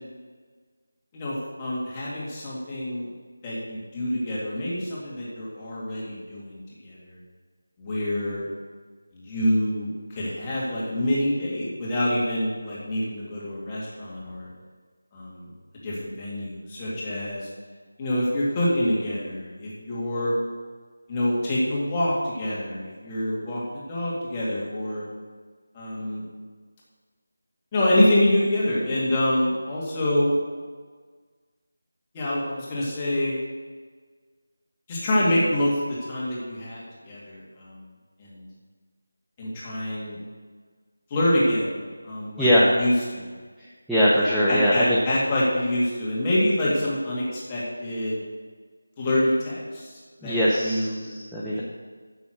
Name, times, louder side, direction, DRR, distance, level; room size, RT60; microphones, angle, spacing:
voice 1, 1.1-3.1 3.4-7.2 7.8-8.5 9.2-14.5 15.1-15.5 15.8-17.5 18.0-20.3 21.1-25.0 25.7-26.2 27.7-30.3 32.1-33.4 34.9-37.7 38.2-38.4 39.4-40.2 41.1-41.8 42.0-42.5 42.7-43.3 44.5-48.2 49.0-49.9 50.2-51.0 51.5-51.6, left 1 dB, 15° left, -7 dB, 2.4 m, -26 dB
voice 2, 42.4-42.7 43.9-45.0 50.2-51.6, equal, ahead, -11 dB, 0.7 m, -21 dB
9.3 x 7.2 x 6.5 m, 1.5 s
figure-of-eight pair, 170°, 0 cm